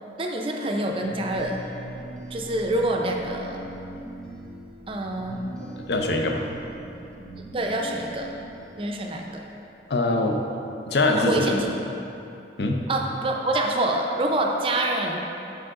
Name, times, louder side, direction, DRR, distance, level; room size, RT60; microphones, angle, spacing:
voice 1, 0.2-1.6 2.3-3.6 4.9-5.4 7.5-8.3 8.8-9.4 11.2-11.7 12.9-15.2, right 1 dB, 30° right, 1 dB, 0.5 m, -26 dB
sound 1, 0.9-9.6, right 1 dB, 5° left, 0.7 m, -41 dB
voice 2, 5.9-6.5 9.9-10.4 10.9-11.6 12.6-12.9, left 2 dB, 70° left, 3 dB, 0.6 m, -23 dB
6.9 x 4.8 x 3.7 m, 2.9 s
head